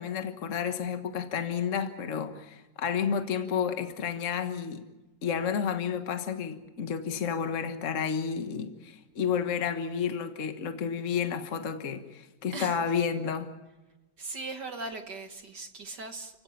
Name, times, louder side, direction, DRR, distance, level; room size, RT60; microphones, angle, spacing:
voice 1, 0.0-4.8 5.2-13.5, left 7 dB, 60° left, 7 dB, 0.8 m, -31 dB
voice 2, 14.2-16.4, right 3 dB, 50° right, 6 dB, 1.4 m, -39 dB
29.5 x 17.0 x 7.1 m, 1.1 s
omnidirectional pair, 3.4 m